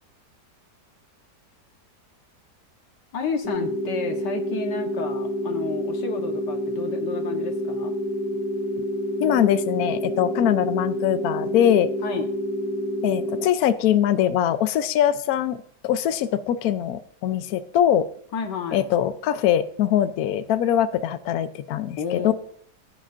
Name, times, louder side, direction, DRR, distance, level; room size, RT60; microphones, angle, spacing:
voice 1, 3.1-7.9 12.0-12.3 18.3-18.9 22.0-22.3, left 5 dB, 85° left, 5 dB, 1.9 m, -31 dB
sound 1, 3.4-13.5, equal, 10° right, 2.0 m, -28 dB
voice 2, 9.2-11.9 13.0-18.1 18.7-22.3, left 10 dB, 65° left, 12 dB, 1.1 m, -22 dB
16.0 x 9.9 x 2.5 m, 0.63 s
omnidirectional pair, 1.8 m